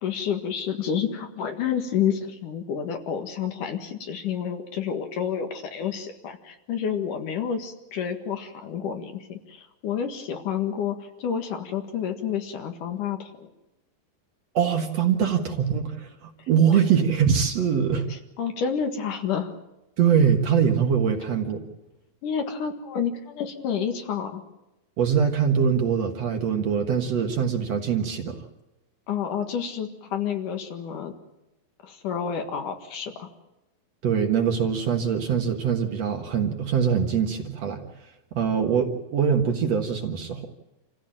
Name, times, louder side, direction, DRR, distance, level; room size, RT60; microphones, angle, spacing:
voice 1, 0.0-13.5 16.4-16.8 18.1-19.5 22.2-24.4 29.1-31.1 31.8-33.3, left 7 dB, 65° left, 5 dB, 3.2 m, -29 dB
voice 2, 14.5-18.1 20.0-21.6 25.0-28.4 34.0-37.8 38.3-40.5, right 7 dB, 55° right, 3 dB, 2.4 m, -23 dB
27.5 x 15.5 x 8.9 m, 0.96 s
omnidirectional pair, 4.1 m